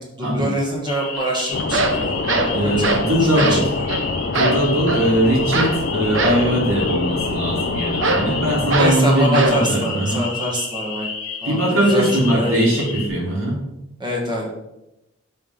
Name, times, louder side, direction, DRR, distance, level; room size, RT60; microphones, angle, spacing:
voice 1, 0.2-3.0 3.3-3.9 8.8-11.1 11.4-11.6 11.9-12.5 14.0-14.5, equal, 20° right, -2 dB, 1.7 m, -25 dB
sound 1, 0.9-13.1, left 5 dB, 85° left, 1.3 m, -31 dB
sound 2, 1.2-1.3 1.6-3.1 3.4-3.6 3.9-4.0 4.3-5.1 5.5-5.8 6.1-6.5 8.0-8.3 8.7-9.0 9.3-9.6, right 2 dB, 60° right, 0.9 m, -21 dB
sound 3, 1.5-8.9, left 3 dB, 50° left, 0.4 m, -26 dB
voice 2, 2.5-3.7 4.3-10.3 11.4-13.6, right 1 dB, 75° right, -3 dB, 2.9 m, -20 dB
8.7 x 5.8 x 3.5 m, 0.90 s
head